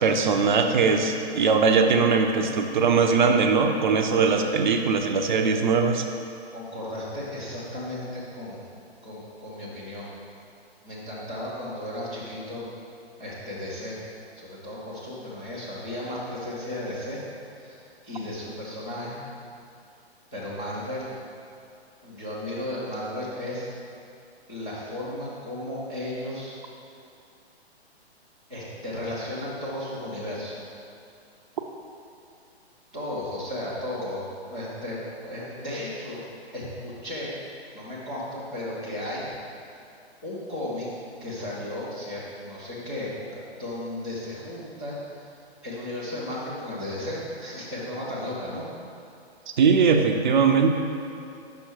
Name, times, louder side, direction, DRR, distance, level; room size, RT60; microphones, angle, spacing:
voice 1, 0.0-6.0 49.6-50.7, right 5 dB, 45° right, 5 dB, 0.6 m, -21 dB
voice 2, 6.5-8.6 9.0-10.1 10.8-12.7 13.2-14.0 14.4-17.2 17.6-19.2 20.3-21.1 22.0-23.7 24.5-26.5 28.5-30.6 32.9-36.2 36.5-37.3 37.7-39.3 40.2-40.9 41.2-45.3 45.6-48.6, left 1 dB, 5° left, -14 dB, 0.3 m, -34 dB
5.9 x 5.5 x 4.4 m, 2.5 s
figure-of-eight pair, 125°, 33 cm